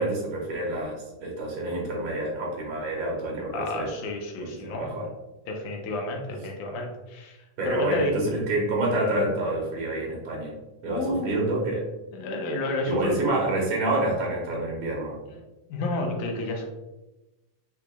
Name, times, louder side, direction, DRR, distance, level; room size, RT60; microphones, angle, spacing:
voice 1, 0.0-3.9 4.4-5.1 7.6-10.6 10.8-11.8 12.9-15.2, right 1 dB, 70° right, -2 dB, 2.0 m, -28 dB
voice 2, 3.5-5.0 5.5-7.4 7.7-8.2 10.9-11.3 12.1-13.4 15.3-15.4 15.7-16.6, left 1 dB, 80° left, 1 dB, 2.1 m, -30 dB
6.0 x 3.1 x 2.3 m, 1.0 s
omnidirectional pair, 3.7 m